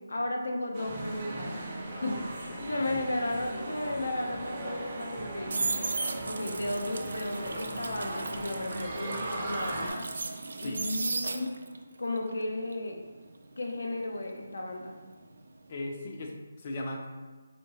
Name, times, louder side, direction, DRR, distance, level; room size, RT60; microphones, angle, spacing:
voice 1, 0.1-1.6 2.0-10.0 10.5-11.6 12.0-13.0 13.6-15.0, left 1 dB, 85° left, 1 dB, 0.6 m, -34 dB
sound 1, 0.7-9.9, right 2 dB, 25° right, 0.6 m, -38 dB
voice 2, 1.9-2.2 2.5-2.9 10.5-10.9 15.7-17.1, left 1 dB, 30° left, 2 dB, 0.5 m, -39 dB
sound 2, 5.1-11.8 12.2-15.1 15.3-15.7, right 3 dB, 65° right, 0.3 m, -36 dB
4.3 x 2.7 x 2.8 m, 1.3 s
hypercardioid pair, 170°, 0 cm